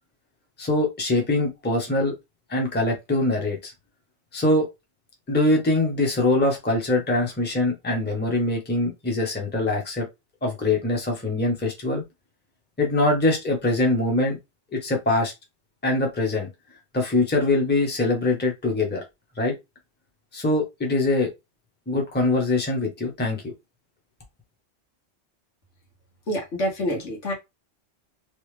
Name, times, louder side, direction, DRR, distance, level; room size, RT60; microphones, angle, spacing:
voice 1, 0.6-2.1 2.5-3.7 4.3-4.7 5.3-10.1 10.4-12.0 12.8-14.4 14.7-15.3 15.8-16.5 16.9-19.0 19.4-19.5 20.3-21.3 21.9-23.5, left 2 dB, 10° left, 0.8 m, -23 dB
voice 2, 26.3-27.3, equal, 70° left, 1.5 m, -27 dB
3.2 x 2.3 x 3.2 m
omnidirectional pair, 1.2 m